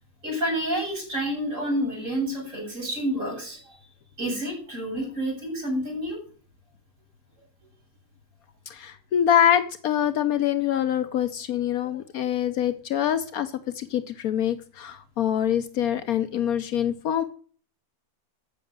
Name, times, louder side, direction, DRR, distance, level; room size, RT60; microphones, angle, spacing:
voice 1, 0.2-3.8 4.2-6.2, right 1 dB, 55° right, 8.0 m, -29 dB
voice 2, 8.7-17.2, left 10 dB, 70° left, 1.2 m, -25 dB
14.0 x 6.4 x 6.6 m
omnidirectional pair, 1.6 m